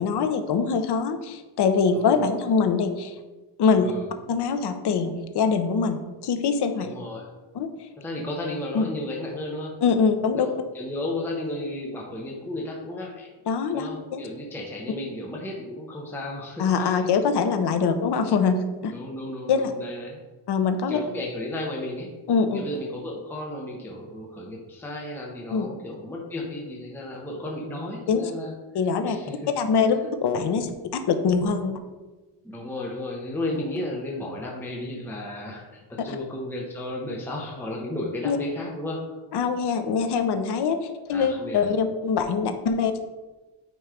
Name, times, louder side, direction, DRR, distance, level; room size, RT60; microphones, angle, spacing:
voice 1, 0.0-3.1 3.6-3.9 4.3-6.9 7.5-7.7 8.7-8.9 9.8-10.5 13.5-14.3 16.6-18.9 19.5-19.7 20.5-21.0 22.3-22.6 25.5-25.7 28.1-28.3 28.7-29.2 29.6-31.8 38.2-38.4 39.3-40.8 41.1-43.0, left 5 dB, 55° left, 7 dB, 0.7 m, -23 dB
voice 2, 1.9-2.3 3.8-4.1 6.8-7.3 8.0-9.7 10.3-13.3 13.7-17.0 18.9-20.2 20.9-22.1 22.5-28.5 29.1-29.4 32.4-39.2 41.1-41.7, left 1 dB, 5° left, -2 dB, 0.7 m, -34 dB
9.1 x 3.1 x 4.9 m, 1.2 s
wide cardioid pair, 180°, 49 cm